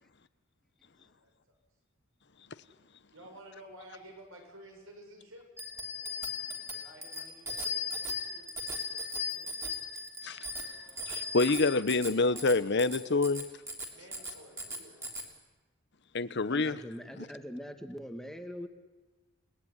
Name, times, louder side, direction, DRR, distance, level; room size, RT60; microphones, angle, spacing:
voice 1, 1.2-1.6 3.1-5.4 6.6-9.9 13.8-15.1, right 1 dB, 85° right, 2 dB, 6.8 m, -53 dB
Bicycle bell, 5.6-15.3, left 3 dB, 15° right, 3.4 m, -38 dB
voice 2, 11.1-13.4 16.1-16.8, left 3 dB, 60° left, 14 dB, 1.0 m, -27 dB
voice 3, 16.5-18.7, equal, ahead, 6 dB, 1.8 m, -42 dB
29.0 x 19.0 x 9.9 m, 1.2 s
head